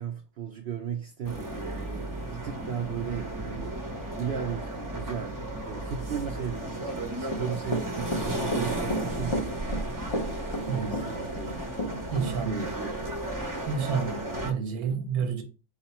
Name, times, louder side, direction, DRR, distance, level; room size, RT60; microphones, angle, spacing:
voice 1, 0.0-3.8 4.1-10.1 10.7-11.6 12.4-13.2, right 8 dB, 65° right, 0.6 m, -36 dB
sound 1, 1.2-14.5, right 1 dB, 20° right, 0.5 m, -34 dB
Run / Walk footsteps, 7.2-12.3 12.6-12.7, equal, 35° left, 0.4 m, -31 dB
voice 2, 12.1-12.6 13.7-15.4, right 6 dB, 85° right, 1.3 m, -29 dB
4.7 x 2.2 x 4.1 m
omnidirectional pair, 1.5 m